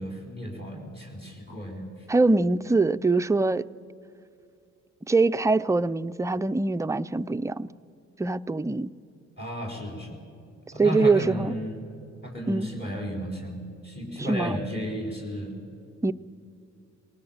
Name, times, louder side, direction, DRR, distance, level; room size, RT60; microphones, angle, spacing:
voice 1, 0.0-1.9 9.4-10.2 10.7-11.8 12.2-15.5, equal, 35° left, 4.5 m, -34 dB
voice 2, 2.1-3.7 5.1-7.7 8.2-8.9 10.8-11.5 12.5-12.7 14.3-14.6 16.0-16.1, right 3 dB, 10° right, 0.4 m, -23 dB
20.0 x 19.0 x 7.3 m
cardioid pair, 90°, 30 cm